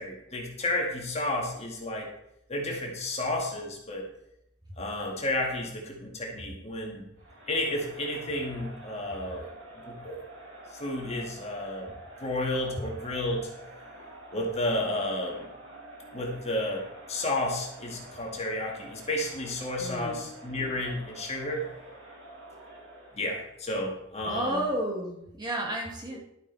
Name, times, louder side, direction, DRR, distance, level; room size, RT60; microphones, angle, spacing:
voice 1, 0.0-2.1 2.5-4.1 4.8-7.1 7.5-9.5 9.9-10.2 10.7-11.9 12.2-13.5 14.3-15.5 16.1-21.7 23.1-24.7 26.1-26.2, left 1 dB, 30° left, 0 dB, 2.0 m, -32 dB
Crowd, 7.2-23.3, right 1 dB, 65° right, 3.1 m, -48 dB
voice 2, 19.8-20.3 24.3-26.2, right 1 dB, 20° right, -1 dB, 1.8 m, -32 dB
12.0 x 8.1 x 4.1 m, 0.80 s
head